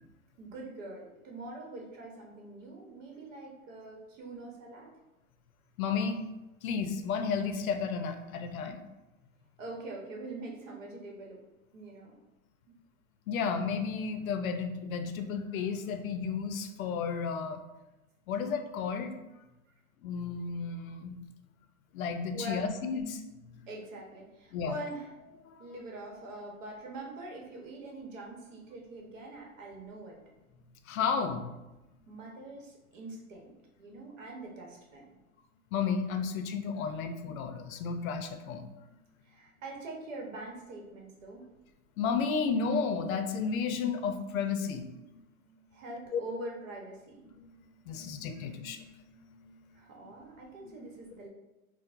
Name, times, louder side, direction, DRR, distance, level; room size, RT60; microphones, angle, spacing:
voice 1, 0.4-4.9 9.6-11.4 11.7-12.1 19.7-19.8 22.3-22.7 23.7-25.1 25.6-30.2 32.1-33.5 33.8-35.0 39.2-41.5 45.7-47.2 49.7-51.3, right 2 dB, 65° right, -1 dB, 1.0 m, -44 dB
voice 2, 5.8-6.2 6.6-8.8 13.3-17.6 18.3-19.2 20.0-21.2 21.9-23.7 24.5-24.8 25.4-25.6 30.9-31.5 35.7-38.7 42.0-45.2 46.1-46.2 47.3-47.5 47.9-49.0 49.2-49.6 50.0-50.1 50.8-50.9, left 5 dB, 80° left, 8 dB, 0.6 m, -33 dB
4.4 x 2.1 x 2.4 m, 1.0 s
supercardioid pair, 160°, 41 cm